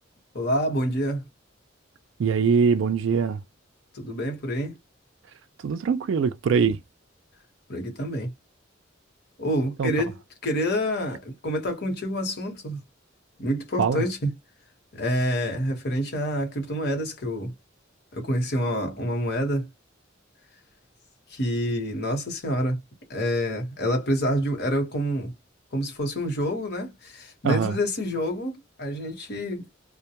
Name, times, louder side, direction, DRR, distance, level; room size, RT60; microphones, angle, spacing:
voice 1, 0.3-1.2 3.9-4.8 7.7-8.3 9.4-10.2 10.4-12.8 13.4-14.3 14.9-17.5 18.1-19.7 21.3-22.8 23.1-25.3 25.7-29.7, equal, 55° left, 1.1 m, -27 dB
voice 2, 2.2-3.4 5.6-6.8 9.8-9.9 13.8-14.1 27.4-27.8, right 6 dB, 65° right, 0.3 m, -22 dB
2.2 x 2.1 x 2.8 m
head